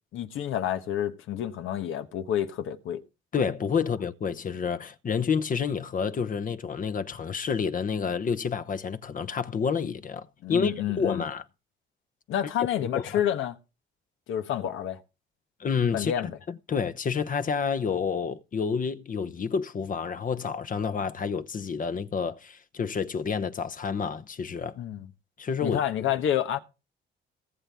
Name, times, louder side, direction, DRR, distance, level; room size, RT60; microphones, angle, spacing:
voice 1, 0.1-3.0 10.4-11.2 12.3-13.6 14.3-15.0 15.9-16.3 24.8-25.1 25.6-26.6, left 10 dB, 80° left, 1.3 m, -29 dB
voice 2, 3.3-11.4 12.9-13.2 15.6-16.3 16.7-24.7 25.4-25.8, left 6 dB, 45° left, 1.0 m, -29 dB
19.0 x 7.8 x 3.5 m
cardioid pair, 90°, 20 cm